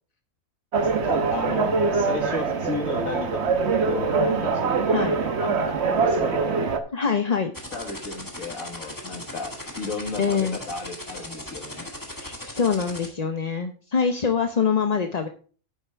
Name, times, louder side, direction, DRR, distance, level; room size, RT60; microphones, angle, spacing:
sound 1, 0.7-6.8, right 4 dB, 55° right, 1.3 m, -23 dB
voice 1, 1.0-3.6 3.9-6.6 7.7-11.9, left 3 dB, 75° left, 5 dB, 2.0 m, -34 dB
voice 2, 6.9-7.5 10.2-10.6 12.2-15.3, left 6 dB, 35° left, 6 dB, 0.7 m, -24 dB
Typing noise (rsmpl haas fx random filt), 7.5-13.1, left 1 dB, 15° left, 2.0 m, -37 dB
10.0 x 8.4 x 3.4 m, 0.39 s
omnidirectional pair, 1.4 m